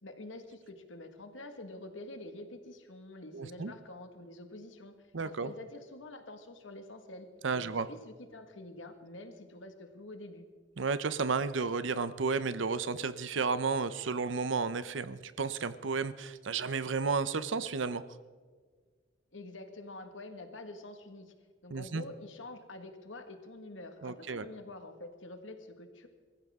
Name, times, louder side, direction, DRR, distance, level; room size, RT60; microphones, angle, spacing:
voice 1, 0.0-4.9 5.2-7.3 7.5-10.5 19.3-21.3 21.6-26.1, left 2 dB, 80° left, 7 dB, 1.8 m, -47 dB
voice 2, 3.3-3.7 5.1-5.5 7.4-7.9 10.8-18.0 21.7-22.0 24.0-24.5, right 4 dB, 75° right, 14 dB, 0.7 m, -32 dB
23.5 x 14.5 x 3.7 m, 1.6 s
head